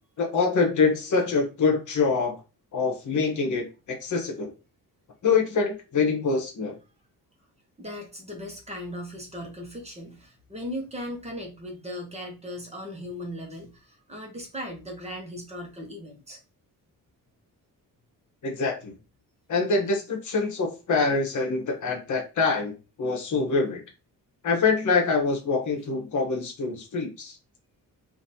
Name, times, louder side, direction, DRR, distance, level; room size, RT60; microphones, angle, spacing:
voice 1, 0.2-2.3 2.7-4.5 5.2-6.8 18.4-18.9 19.5-23.8 24.4-27.4, left 4 dB, 60° left, 1 dB, 1.1 m, -25 dB
voice 2, 7.8-16.4, equal, 20° right, 0 dB, 1.0 m, -38 dB
5.1 x 2.6 x 2.7 m, 0.31 s
wide cardioid pair, 180°, 34 cm